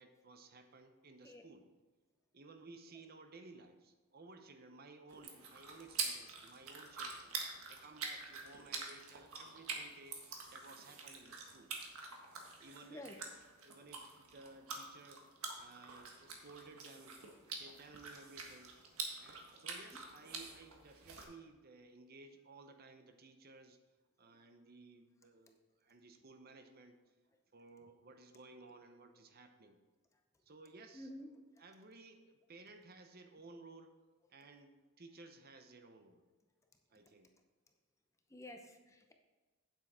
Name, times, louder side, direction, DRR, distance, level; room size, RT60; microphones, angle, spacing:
voice 1, 0.0-1.7 2.3-7.3 7.7-11.7 12.6-13.1 13.6-15.3 15.6-17.2 17.6-18.7 19.2-23.8 24.2-27.0 27.5-29.8 30.5-31.1 31.6-33.9 34.3-36.2 36.9-37.3, right 3 dB, 45° right, 7 dB, 0.7 m, -57 dB
sound 1, 5.1-21.2, right 4 dB, 85° right, 1.6 m, -46 dB
voice 2, 12.9-13.2 24.2-24.3 29.2-29.3 30.9-31.5 37.1-37.2 38.3-39.1, left 1 dB, 15° left, 4 dB, 0.7 m, -51 dB
8.9 x 7.8 x 4.3 m, 1.2 s
head